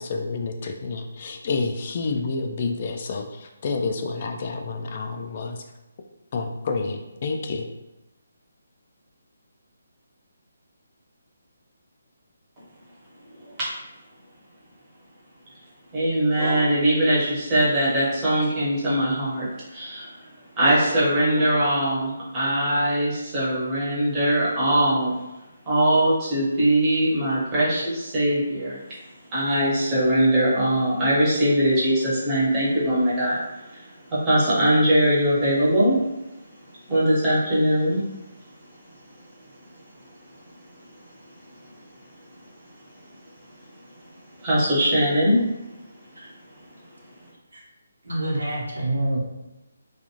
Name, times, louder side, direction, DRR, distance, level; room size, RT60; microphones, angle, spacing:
voice 1, 0.0-5.6 6.3-7.7, left 4 dB, 45° left, 4 dB, 0.3 m, -29 dB
voice 2, 13.4-13.7 15.9-20.3 20.6-25.1 25.6-28.8 29.3-36.0 36.9-38.0 44.4-45.4, right 1 dB, 20° right, -8 dB, 1.1 m, -21 dB
voice 3, 48.0-49.2, right 1 dB, 85° right, -4 dB, 1.0 m, -26 dB
2.4 x 2.4 x 3.0 m, 0.98 s
figure-of-eight pair, 155°, 0 cm